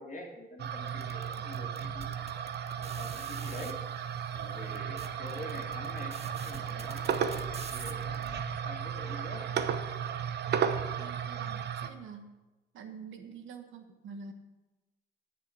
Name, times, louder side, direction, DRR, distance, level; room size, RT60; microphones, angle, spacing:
voice 1, 0.0-3.8 4.3-9.5, left 2 dB, 40° left, 0 dB, 2.2 m, -46 dB
sound 1, 0.6-11.9, right 8 dB, 60° right, 0.8 m, -34 dB
sound 2, 0.9-3.7 4.4-4.5 4.7-8.3, right 5 dB, 30° right, 0.9 m, -47 dB
voice 2, 11.0-12.3 12.7-14.3, right 5 dB, 80° right, 6 dB, 1.4 m, -46 dB
8.7 x 6.9 x 7.8 m, 1.1 s
cardioid pair, 90°, 20 cm